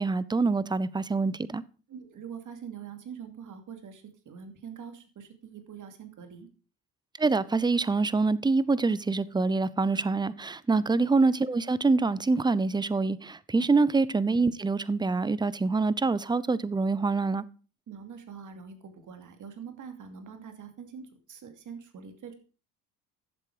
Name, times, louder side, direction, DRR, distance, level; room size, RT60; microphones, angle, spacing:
voice 1, 0.0-1.6 7.2-17.4, right 3 dB, 10° right, 0.6 m, -25 dB
voice 2, 1.9-6.5 10.7-10.8 13.7-13.8 17.9-22.3, right 7 dB, 55° right, 2.6 m, -44 dB
11.5 x 7.5 x 4.9 m
supercardioid pair, 85°, 37 cm